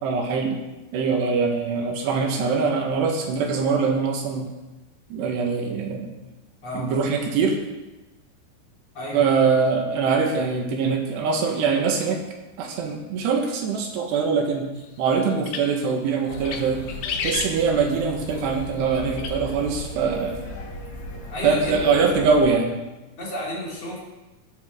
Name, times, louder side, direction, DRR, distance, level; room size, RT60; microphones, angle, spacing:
voice 1, 0.0-0.6 0.9-4.5 5.1-6.1 6.7-7.6 9.1-12.2 12.6-14.7 15.0-16.8 17.2-20.4 21.4-22.8, right 5 dB, 85° right, 2 dB, 3.7 m, -23 dB
voice 2, 6.6-6.9 8.9-9.3 21.3-21.8 23.2-24.0, equal, 40° left, -4 dB, 3.1 m, -31 dB
sound 1, 15.3-15.9 16.3-16.6 16.9-18.0 19.2-19.3, left 6 dB, 80° left, 3.3 m, -30 dB
sound 2, 16.3-22.5, left 1 dB, 60° left, 5.0 m, -36 dB
14.5 x 12.0 x 3.9 m, 1.1 s
omnidirectional pair, 4.8 m